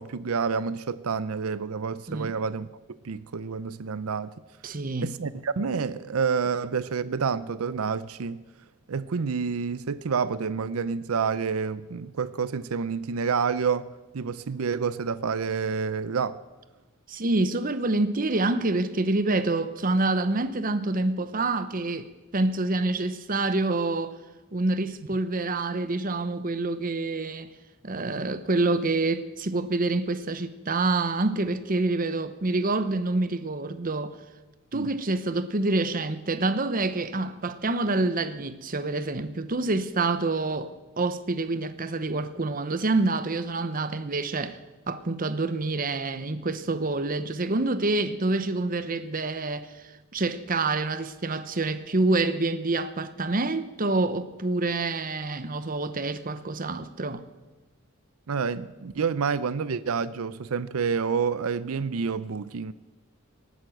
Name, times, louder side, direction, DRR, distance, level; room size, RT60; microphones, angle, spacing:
voice 1, 0.0-2.7 3.0-4.3 5.0-8.4 8.9-16.4 34.7-34.9 58.3-62.7, right 5 dB, 90° right, 0.6 m, -28 dB
voice 2, 4.6-5.2 17.1-24.2 24.5-27.5 27.8-34.2 34.7-44.6 44.9-49.8 50.1-57.2, right 2 dB, 40° right, 0.9 m, -27 dB
18.0 x 9.5 x 7.8 m
head